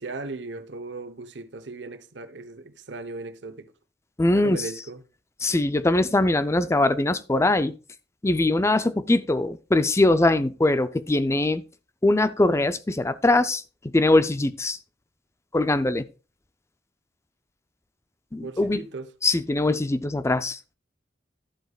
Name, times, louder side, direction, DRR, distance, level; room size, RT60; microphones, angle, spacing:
voice 1, 0.0-3.7 4.3-5.0 18.4-19.1, right 3 dB, 85° right, 0.9 m, -37 dB
voice 2, 4.2-4.6 5.4-7.8 8.2-11.6 12.0-14.8 15.5-16.1 18.3-18.8 19.2-20.6, left 2 dB, 15° left, 0.5 m, -22 dB
11.5 x 8.0 x 2.3 m
head